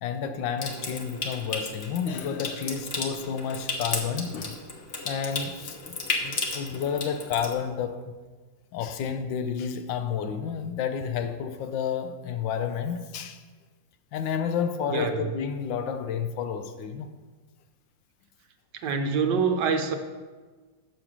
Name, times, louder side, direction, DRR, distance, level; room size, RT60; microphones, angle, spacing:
voice 1, 0.0-4.6 5.0-8.1 8.7-13.4 14.1-17.1, left 7 dB, 80° left, 1.4 m, -30 dB
Water tap faucet / Sink (filling or washing) / Trickle dribble, 0.6-7.5, left 3 dB, 40° left, 1.0 m, -34 dB
voice 2, 14.9-15.3 18.8-20.0, right 5 dB, 70° right, 1.3 m, -25 dB
6.3 x 6.0 x 7.2 m
omnidirectional pair, 2.0 m